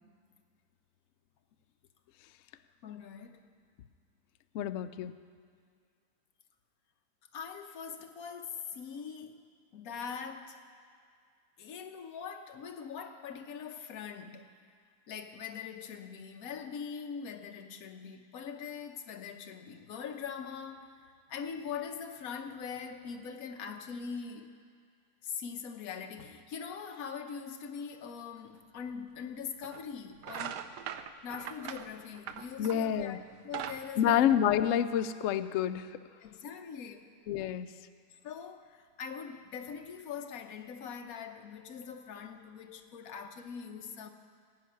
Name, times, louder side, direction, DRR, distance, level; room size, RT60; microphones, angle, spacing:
voice 1, 2.8-3.5 7.3-9.5 9.7-10.6 11.6-14.5 15.1-21.0 21.3-24.5 25.2-30.7 31.2-34.4 36.2-37.1 38.1-44.1, left 6 dB, 60° left, 5 dB, 1.2 m, -42 dB
voice 2, 4.5-5.1 32.6-33.2 34.0-36.0 37.3-37.7, left 10 dB, 85° left, 10 dB, 0.7 m, -28 dB
sound 1, 28.9-29.0 29.6-29.8 30.2-32.9 33.3-35.0, right 9 dB, 70° right, 1.2 m, -41 dB
17.0 x 5.8 x 9.2 m, 2.2 s
omnidirectional pair, 1.9 m